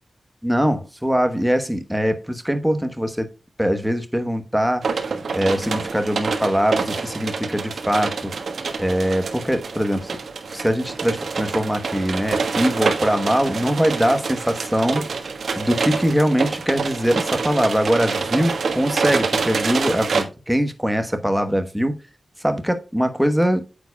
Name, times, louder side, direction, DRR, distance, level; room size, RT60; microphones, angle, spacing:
voice 1, 0.4-3.3 3.6-4.9 5.3-8.3 8.8-10.1 10.5-15.1 15.6-22.0 22.4-23.6, equal, 5° right, 1.1 m, -22 dB
sound 1, 4.8-20.2, right 4 dB, 80° right, 1.3 m, -26 dB
9.0 x 6.9 x 2.3 m
wide cardioid pair, 150°, 0 cm